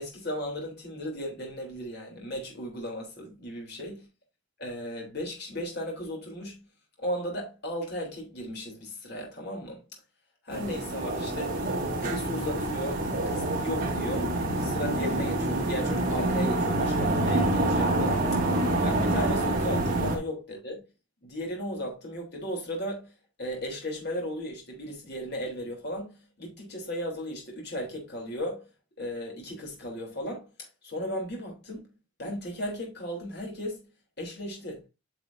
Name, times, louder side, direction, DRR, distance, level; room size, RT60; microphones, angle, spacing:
voice 1, 0.0-4.1 4.6-6.7 7.0-9.8 10.4-18.4 18.8-20.8 21.2-23.1 23.4-28.7 29.0-31.9 32.2-33.9 34.2-34.9, equal, 55° left, 3.4 m, -36 dB
sound 1, 10.5-20.2, right 1 dB, 45° right, 2.9 m, -27 dB
9.5 x 6.1 x 2.7 m
head